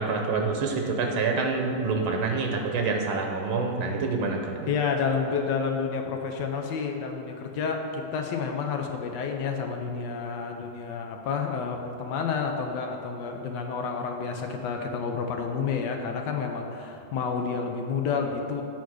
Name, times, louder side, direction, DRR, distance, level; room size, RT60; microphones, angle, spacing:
voice 1, 0.0-4.7, right 4 dB, 90° right, 2 dB, 1.8 m, -27 dB
voice 2, 4.7-18.6, left 5 dB, 65° left, 3 dB, 1.4 m, -30 dB
8.4 x 4.2 x 6.3 m, 2.7 s
omnidirectional pair, 2.2 m